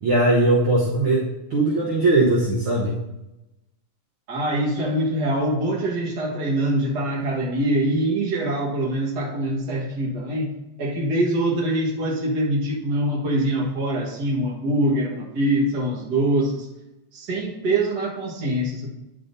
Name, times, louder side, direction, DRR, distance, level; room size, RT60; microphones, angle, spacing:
voice 1, 0.0-1.2 1.5-2.9, right 2 dB, 60° right, -4 dB, 1.7 m, -19 dB
voice 2, 4.3-10.5 10.8-16.7 17.1-18.9, right 1 dB, 40° right, -3 dB, 1.7 m, -24 dB
9.6 x 7.6 x 2.7 m, 0.96 s
omnidirectional pair, 3.3 m